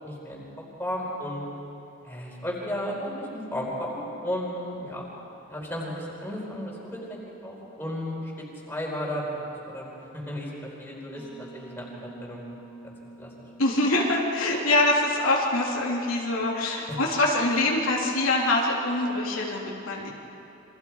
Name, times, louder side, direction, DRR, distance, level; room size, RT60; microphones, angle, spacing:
voice 1, 0.0-1.4 2.0-5.0 5.5-8.3 8.7-12.4 12.8-13.3 16.9-17.0, equal, 10° left, -4 dB, 4.7 m, -34 dB
sound 1, 11.2-16.7, right 3 dB, 10° right, 6.0 m, -49 dB
voice 2, 13.6-20.1, left 2 dB, 85° left, -3 dB, 3.3 m, -24 dB
28.0 x 25.0 x 4.8 m, 3.0 s
head